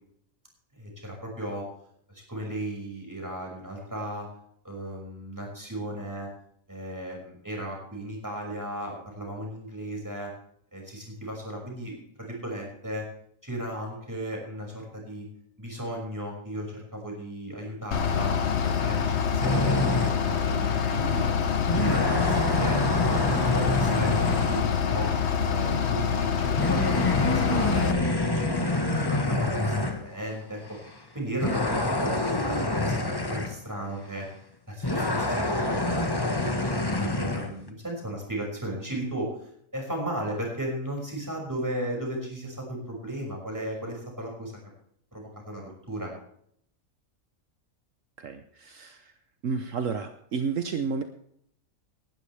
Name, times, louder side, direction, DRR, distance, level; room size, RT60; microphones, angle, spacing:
voice 1, 0.7-1.6 2.1-4.3 4.6-6.3 6.7-10.3 10.7-11.9 12.2-13.0 13.4-15.3 15.6-18.4 18.6-21.2 21.7-22.8 23.1-25.1 25.4-28.2 29.0-30.6 31.1-32.2 32.5-34.3 34.7-36.2 36.6-44.5 45.1-46.1, right 1 dB, 15° right, -1 dB, 6.0 m, -35 dB
Bus / Idling, 17.9-27.9, left 7 dB, 55° left, 1.2 m, -26 dB
sound 1, 19.4-20.2 20.9-21.0 21.7-24.7 26.6-30.1 30.7-30.9 31.4-33.6 34.8-37.5, left 2 dB, 15° left, 1.4 m, -26 dB
voice 2, 48.2-49.1 49.4-51.0, right 5 dB, 70° right, 7 dB, 1.3 m, -31 dB
18.5 x 12.5 x 3.4 m, 0.68 s
omnidirectional pair, 1.4 m